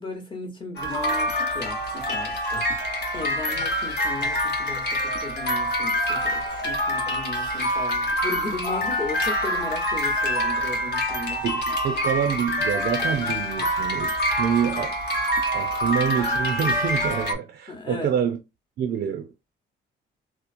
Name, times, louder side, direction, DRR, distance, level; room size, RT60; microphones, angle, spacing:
voice 1, 0.0-2.6 3.1-11.4 17.7-18.2, left 3 dB, 25° left, 0.8 m, -36 dB
sound 1, 0.8-17.3, equal, 60° left, 0.8 m, -26 dB
voice 2, 11.4-15.0 15.5-18.4 18.8-19.3, right 8 dB, 55° right, 0.4 m, -27 dB
2.9 x 2.0 x 2.4 m
cardioid pair, 90°, 20 cm